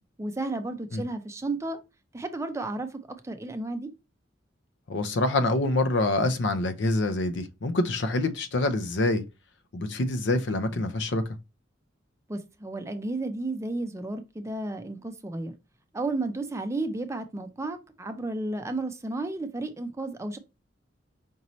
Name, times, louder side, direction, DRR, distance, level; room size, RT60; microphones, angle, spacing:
voice 1, 0.2-1.8 2.1-3.9 12.3-15.5 15.9-20.4, right 2 dB, 15° right, 0.4 m, -33 dB
voice 2, 4.9-9.2 9.7-11.2, left 2 dB, 65° left, 0.6 m, -26 dB
5.2 x 2.7 x 3.0 m
head